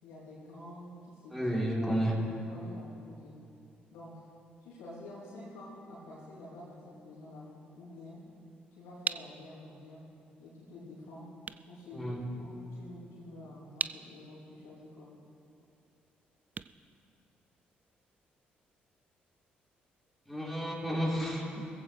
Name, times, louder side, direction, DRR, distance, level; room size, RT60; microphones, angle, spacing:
voice 1, 0.0-1.5 1.8-2.0 2.4-3.4 3.9-4.2 4.6-8.3 8.7-10.1 10.4-11.3 11.7-15.1, left 1 dB, 65° left, -7 dB, 3.1 m, -49 dB
voice 2, 1.3-2.2 11.9-12.2 20.3-21.7, equal, ahead, -5 dB, 3.7 m, -31 dB
sound 1, 9.0-17.8, right 5 dB, 30° right, 0.4 m, -43 dB
20.0 x 15.0 x 3.3 m, 2.6 s
figure-of-eight pair, 40°, 5 cm